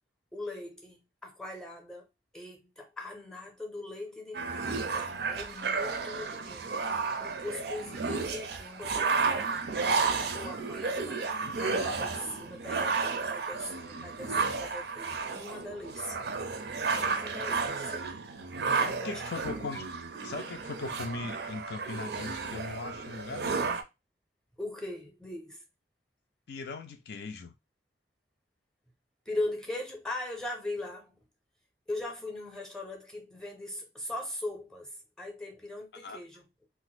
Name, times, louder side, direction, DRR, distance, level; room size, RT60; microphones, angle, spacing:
voice 1, 0.3-2.1 2.3-11.2 11.6-16.2 17.0-18.0 18.8-19.1 23.0-23.1 24.6-25.6 29.3-31.3 31.9-36.5, left 1 dB, 5° left, 0.6 m, -40 dB
sound 1, 4.3-23.8, right 4 dB, 60° right, 0.4 m, -32 dB
voice 2, 11.2-12.2 16.9-17.6 18.8-19.9 20.2-23.8 26.5-27.5 35.9-36.2, left 4 dB, 65° left, 0.4 m, -40 dB
2.5 x 2.1 x 3.9 m
head